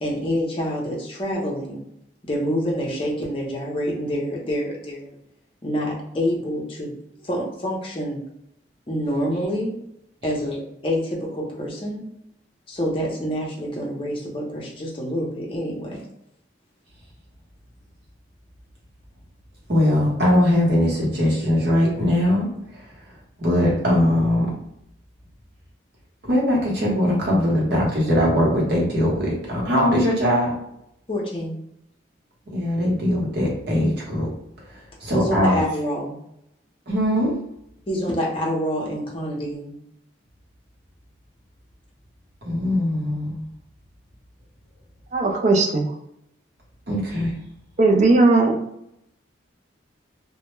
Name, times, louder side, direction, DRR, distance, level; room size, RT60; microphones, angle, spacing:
voice 1, 0.0-1.8 2.3-5.1 5.6-6.9 7.2-8.2 8.9-9.7 10.2-12.0 12.7-16.1 31.1-31.6 35.1-36.2 37.9-39.7, equal, 30° left, -4 dB, 0.6 m, -27 dB
voice 2, 19.7-24.5 26.2-30.6 32.5-34.3 34.6-35.6 36.9-37.3 42.4-43.5 46.9-47.4, left 1 dB, 55° right, -4 dB, 0.9 m, -21 dB
voice 3, 45.1-45.9 47.8-48.6, right 3 dB, 35° right, 2 dB, 0.4 m, -17 dB
2.1 x 2.0 x 3.0 m, 0.77 s
head